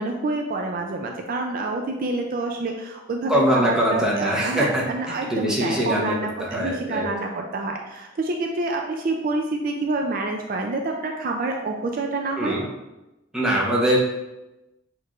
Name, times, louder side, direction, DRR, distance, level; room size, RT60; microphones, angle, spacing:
voice 1, 0.0-12.6, right 2 dB, 50° right, 2 dB, 0.4 m, -27 dB
voice 2, 3.3-6.1 6.4-7.1 12.4-12.6 13.3-14.0, equal, 5° right, -4 dB, 0.9 m, -22 dB
6.4 x 3.1 x 2.4 m, 1.0 s
head